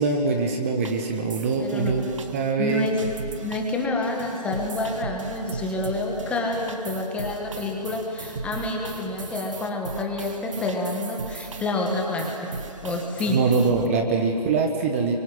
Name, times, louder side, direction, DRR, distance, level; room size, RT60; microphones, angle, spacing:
voice 1, 0.0-2.9 13.3-15.2, right 4 dB, 20° right, 3 dB, 1.4 m, -23 dB
sound 1, 0.8-13.9, right 4 dB, 50° right, 1.9 m, -38 dB
voice 2, 1.6-1.9 2.6-2.9 3.4-12.5 12.8-13.4, left 2 dB, 5° left, 1 dB, 1.7 m, -28 dB
30.0 x 24.0 x 8.1 m, 2.5 s
figure-of-eight pair, 155°, 20 cm